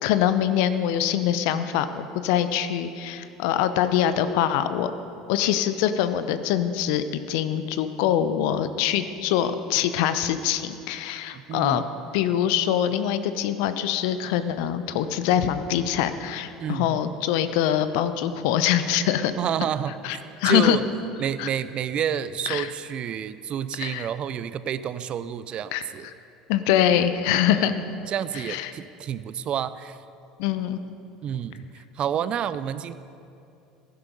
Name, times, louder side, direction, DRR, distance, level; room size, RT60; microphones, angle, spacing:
voice 1, 0.0-4.9 5.3-11.8 12.1-19.3 20.0-20.8 21.4-21.5 22.5-22.7 23.8-24.1 25.7-25.8 26.5-27.8 28.5-28.7 30.4-30.8, left 10 dB, 65° left, 11 dB, 0.8 m, -24 dB
voice 2, 11.3-11.8 16.6-17.0 19.4-20.0 20.4-20.8 21.2-26.1 27.5-27.7 28.1-30.0 31.2-32.9, right 9 dB, 45° right, 14 dB, 0.6 m, -29 dB
16.0 x 10.5 x 5.3 m, 2.6 s
hypercardioid pair, 70°, 3 cm